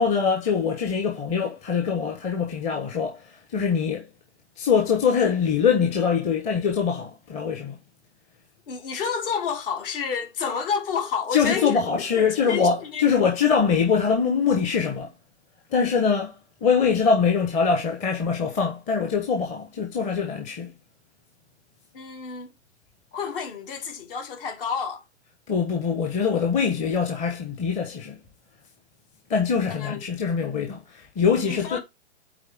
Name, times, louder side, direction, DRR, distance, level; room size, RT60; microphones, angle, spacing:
voice 1, 0.0-4.1 4.6-7.8 11.3-15.1 15.7-20.7 25.5-28.2 29.3-31.8, left 6 dB, 20° left, 1.3 m, -23 dB
voice 2, 8.7-13.1 21.9-22.5 23.1-25.0 29.7-30.0 31.5-31.8, left 6 dB, 50° left, 2.9 m, -30 dB
8.8 x 4.4 x 3.6 m
hypercardioid pair, 125°, 35 cm